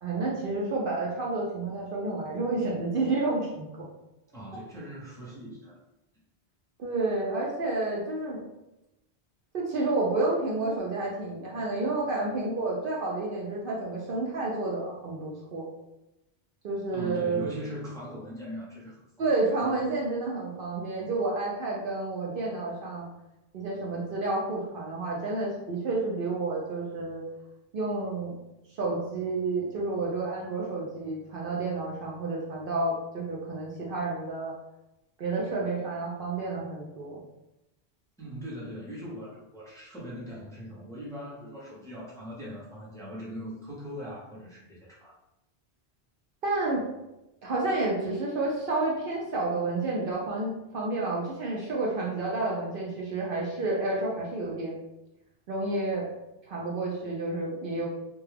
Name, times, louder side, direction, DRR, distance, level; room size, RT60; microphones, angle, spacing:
voice 1, 0.0-3.9 6.8-8.4 9.5-15.7 16.6-17.4 19.2-23.1 23.5-27.2 27.7-28.3 28.8-34.5 35.2-37.2 46.4-46.8 47.4-54.7 55.5-56.1 56.5-57.9, right 2 dB, 60° right, -4 dB, 0.7 m, -30 dB
voice 2, 4.3-5.8 16.9-19.3 19.6-19.8 38.2-45.1, equal, 5° left, -7 dB, 0.6 m, -40 dB
2.2 x 2.2 x 3.2 m, 0.93 s
omnidirectional pair, 1.1 m